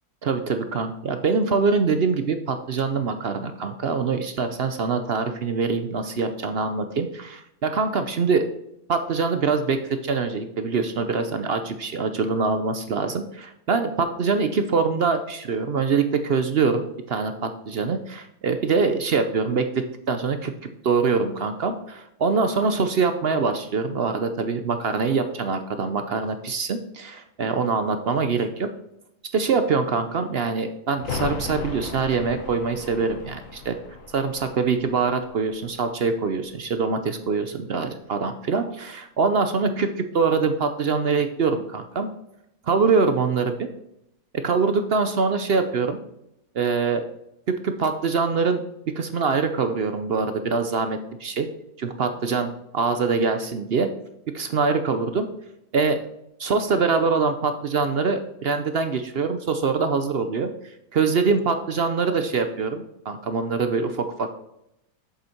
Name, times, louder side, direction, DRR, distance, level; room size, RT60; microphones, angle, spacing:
voice 1, 0.2-8.5 8.9-20.5 20.8-28.7 29.3-33.8 34.1-42.1 42.6-43.7 44.4-46.0 46.5-47.0 47.5-48.6 48.9-51.5 51.8-53.9 54.3-55.3 55.7-56.0 56.4-64.4, right 4 dB, 55° right, 8 dB, 0.7 m, -24 dB
sound 1, 30.9-36.5 36.8-36.9, left 4 dB, 60° left, 1.4 m, -37 dB
7.9 x 7.1 x 4.4 m, 0.82 s
omnidirectional pair, 1.6 m